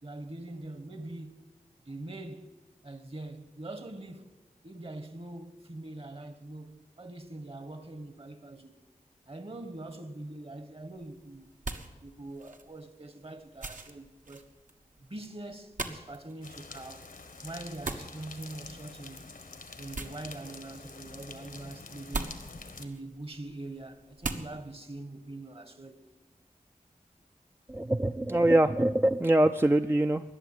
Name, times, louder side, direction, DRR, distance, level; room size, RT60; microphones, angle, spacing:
voice 1, 0.0-1.4 1.8-2.5 2.8-4.3 4.6-8.7 9.3-11.5 12.0-14.5 15.0-17.1 17.4-19.3 19.8-22.4 22.8-26.0, right 2 dB, 40° right, 1.4 m, -43 dB
sound 1, 10.9-24.8, right 2 dB, 65° right, 1.4 m, -43 dB
sound 2, 16.4-22.9, left 3 dB, 80° left, 1.4 m, -47 dB
voice 2, 27.7-30.2, right 1 dB, 15° right, 0.5 m, -24 dB
20.0 x 7.1 x 9.9 m
wide cardioid pair, 50°, 14 cm